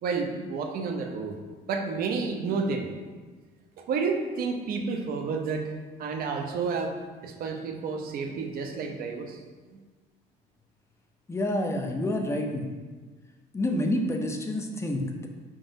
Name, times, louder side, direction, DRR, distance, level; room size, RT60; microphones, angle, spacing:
voice 1, 0.0-1.4 1.7-2.9 3.8-5.7 6.0-7.0 7.2-9.4 9.7-9.8, right 4 dB, 60° right, 3 dB, 0.6 m, -30 dB
voice 2, 11.3-12.7 13.5-15.3, left 1 dB, 15° left, 2 dB, 0.5 m, -28 dB
5.0 x 3.8 x 2.6 m, 1.4 s
cardioid pair, 110°, 17 cm